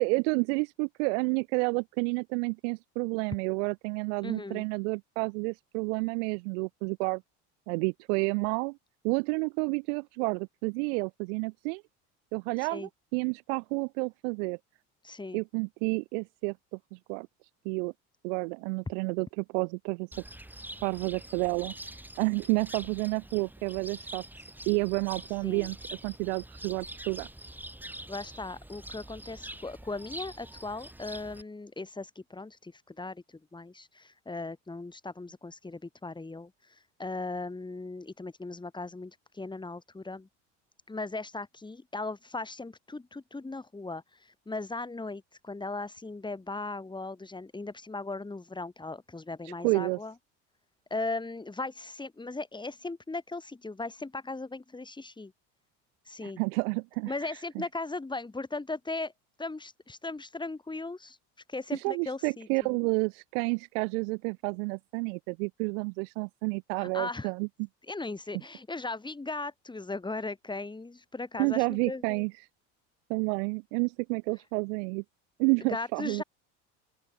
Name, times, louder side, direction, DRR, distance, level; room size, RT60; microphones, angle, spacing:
voice 1, 0.0-7.2 7.7-8.8 9.0-11.8 12.3-14.6 15.3-17.3 17.6-17.9 18.2-20.1 20.8-21.7 22.2-24.2 24.7-27.3 49.4-50.0 56.2-57.6 61.7-67.5 71.4-72.3 73.1-75.0 75.4-76.2, right 33 dB, 75° right, 0.8 m, -30 dB
voice 2, 4.2-4.6 12.6-12.9 15.0-15.4 25.4-25.7 28.1-40.3 40.9-50.1 50.9-55.3 56.0-56.4 57.1-59.1 59.4-61.2 61.5-62.7 66.8-67.3 67.9-72.2 75.7-76.2, left 3 dB, 10° left, 2.6 m, -38 dB
Cricket, 20.1-31.4, right 1 dB, 5° right, 5.4 m, -45 dB
open air
hypercardioid pair, 85°, 36 cm